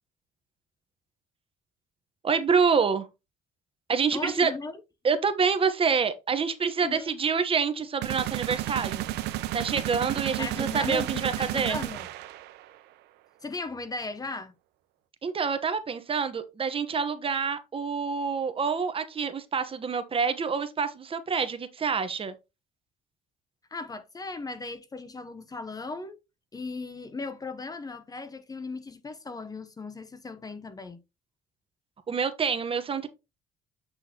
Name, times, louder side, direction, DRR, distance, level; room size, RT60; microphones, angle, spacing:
voice 1, 2.2-3.1 3.9-4.5 5.0-9.1 9.5-11.8 15.2-22.3 32.1-33.1, right 5 dB, 35° right, 1.0 m, -27 dB
voice 2, 4.1-4.8 6.8-7.1 10.4-12.1 13.4-14.5 23.7-26.2 26.5-31.0, left 3 dB, 20° left, 0.8 m, -37 dB
sound 1, 8.0-12.8, right 14 dB, 85° right, 0.7 m, -32 dB
7.8 x 6.2 x 2.9 m
cardioid pair, 110°, 17 cm